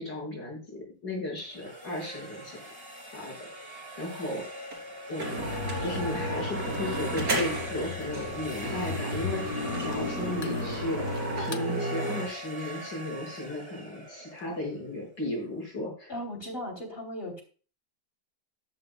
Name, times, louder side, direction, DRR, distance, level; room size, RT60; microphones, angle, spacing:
voice 1, 0.0-2.6 3.1-3.4 4.0-4.4 5.1-5.5 5.8-11.0 11.4-16.1, left 1 dB, 85° left, -1 dB, 5.9 m, -35 dB
sound 1, 1.4-15.2, right 1 dB, 15° right, 1.9 m, -42 dB
sound 2, 4.7-4.8 5.2-7.8 8.1-8.3 8.6-12.2, right 1 dB, 65° right, 4.1 m, -32 dB
sound 3, 5.4-11.7, left 6 dB, 55° left, 1.0 m, -38 dB
voice 2, 16.1-17.4, left 1 dB, 30° left, 2 dB, 3.3 m, -37 dB
13.0 x 11.0 x 2.3 m, 0.38 s
omnidirectional pair, 1.8 m